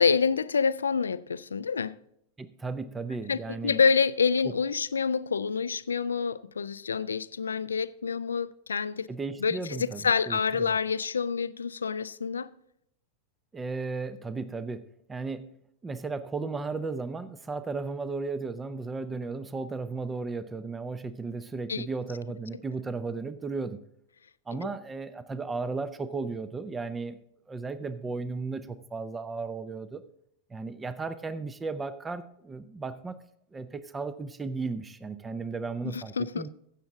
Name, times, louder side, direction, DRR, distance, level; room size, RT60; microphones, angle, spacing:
voice 1, 0.0-2.0 3.3-9.1 9.4-12.5 21.7-21.9 35.9-36.4, left 5 dB, 70° left, 0.4 m, -27 dB
voice 2, 2.4-3.8 4.4-4.5 9.1-10.0 10.3-10.7 13.5-15.5 15.8-23.8 24.5-27.2 27.5-30.0 30.5-33.2 33.5-36.5, right 4 dB, 15° right, 0.7 m, -35 dB
16.0 x 7.2 x 3.6 m
figure-of-eight pair, 90°, 0 cm